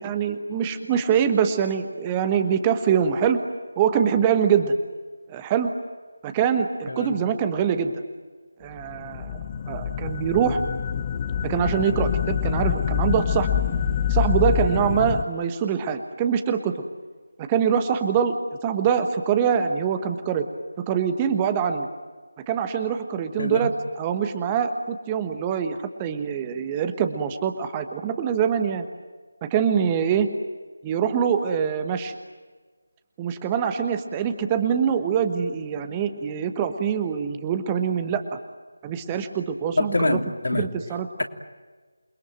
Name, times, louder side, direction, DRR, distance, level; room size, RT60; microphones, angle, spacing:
voice 1, 0.0-3.4 3.8-4.7 5.3-5.7 6.2-7.9 8.6-9.4 9.7-10.6 11.4-13.5 14.1-16.7 17.4-18.4 18.6-20.5 20.9-21.9 22.5-28.9 29.5-30.3 30.8-32.1 33.2-38.4 38.8-40.2 40.5-41.1, right 7 dB, 15° right, 8 dB, 1.3 m, -24 dB
voice 2, 6.9-7.2 23.4-23.7 39.8-40.7 41.2-41.3, left 2 dB, 55° left, 5 dB, 2.9 m, -25 dB
sound 1, 8.8-15.2, left 9 dB, 20° left, 0.9 m, -26 dB
28.5 x 21.5 x 9.1 m, 1.4 s
figure-of-eight pair, 160°, 0 cm